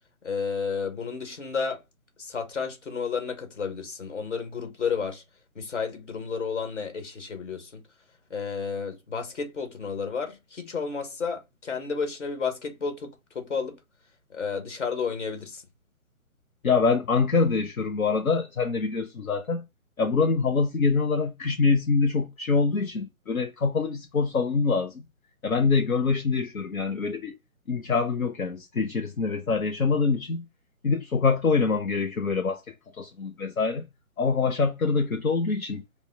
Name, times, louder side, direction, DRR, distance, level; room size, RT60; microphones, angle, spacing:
voice 1, 0.2-1.8 2.2-5.2 5.5-7.8 8.3-13.8 14.3-15.6, left 5 dB, 55° left, 1.6 m, -32 dB
voice 2, 16.6-19.6 20.0-25.0 25.4-27.4 27.7-30.4 30.8-33.9 34.2-35.8, left 4 dB, 75° left, 0.7 m, -25 dB
5.4 x 2.2 x 3.7 m
figure-of-eight pair, 140°, 42 cm